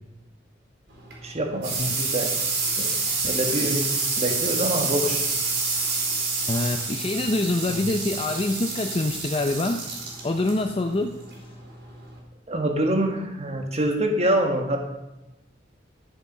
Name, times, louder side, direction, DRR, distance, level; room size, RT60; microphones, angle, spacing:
sound 1, 0.9-12.2, right 3 dB, 65° right, 4.2 m, -28 dB
voice 1, 1.2-2.3 2.8-2.9 3.2-5.2 7.7-7.9 12.5-14.8, right 1 dB, 35° right, 3 dB, 1.7 m, -26 dB
voice 2, 6.5-9.8 10.2-11.1, left 2 dB, 30° left, 5 dB, 0.6 m, -25 dB
12.0 x 7.1 x 5.5 m, 0.95 s
head